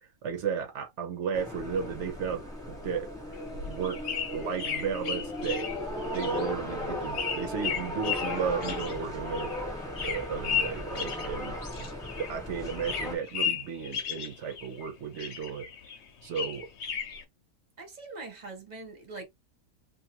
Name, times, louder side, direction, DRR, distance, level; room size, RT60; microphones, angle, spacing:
voice 1, 0.2-3.1 3.6-4.0 4.3-5.7 6.1-9.5 10.0-11.9 12.2-15.7 16.2-16.7, right 7 dB, 60° right, 0.8 m, -34 dB
sound 1, 1.3-13.2, left 1 dB, 5° left, 0.5 m, -36 dB
sound 2, 3.3-12.4 12.6-14.9 15.2-17.2, left 7 dB, 65° left, 0.7 m, -35 dB
voice 2, 17.8-19.3, right 3 dB, 35° right, 0.8 m, -42 dB
2.6 x 2.4 x 2.7 m
omnidirectional pair, 1.8 m